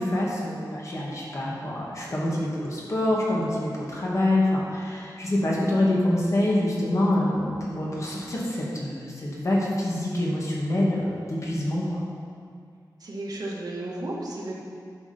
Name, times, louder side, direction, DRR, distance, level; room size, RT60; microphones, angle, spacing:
voice 1, 0.0-12.0, left 1 dB, 45° left, -5 dB, 2.4 m, -26 dB
voice 2, 13.0-14.5, right 2 dB, 60° right, -4 dB, 2.0 m, -33 dB
11.5 x 6.9 x 5.4 m, 2.2 s
wide cardioid pair, 115°, 7 cm